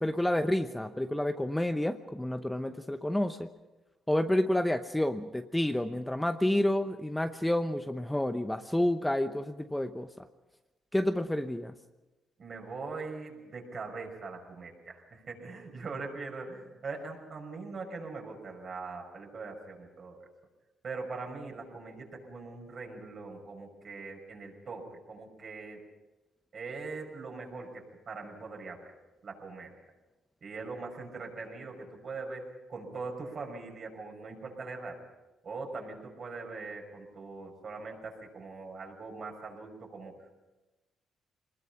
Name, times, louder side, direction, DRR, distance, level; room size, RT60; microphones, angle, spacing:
voice 1, 0.0-3.5 4.1-10.1 10.9-11.7, left 1 dB, 10° left, 8 dB, 0.9 m, -29 dB
voice 2, 12.4-20.3 20.8-25.8 26.5-28.9 29.2-29.7 30.4-35.0 35.4-40.4, right 3 dB, 50° right, 1 dB, 6.0 m, -41 dB
23.0 x 20.5 x 5.8 m, 1.1 s
cardioid pair, 90°, 0 cm